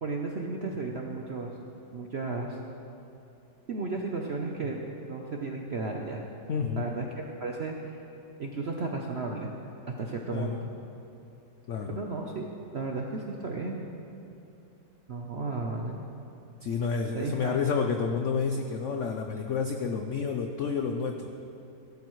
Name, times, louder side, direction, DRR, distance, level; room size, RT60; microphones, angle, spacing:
voice 1, 0.0-1.5 1.9-2.6 3.7-6.2 6.8-8.0 8.4-9.5 9.9-10.7 11.9-12.5 12.7-13.8 15.1-16.0 17.1-17.7, right 3 dB, 60° right, 1 dB, 0.6 m, -34 dB
voice 2, 6.5-6.8 10.3-10.6 11.7-12.0 16.6-21.3, left 5 dB, 85° left, 4 dB, 0.6 m, -30 dB
16.5 x 12.0 x 3.1 m, 2.8 s
omnidirectional pair, 2.0 m